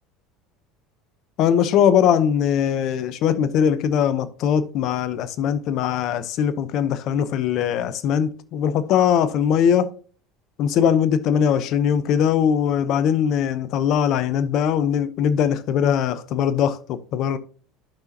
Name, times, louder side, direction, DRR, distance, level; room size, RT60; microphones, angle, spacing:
voice 1, 1.4-9.9 10.6-17.4, left 8 dB, 55° left, 0.7 m, -21 dB
11.5 x 5.7 x 2.8 m
hypercardioid pair, 75°, 0 cm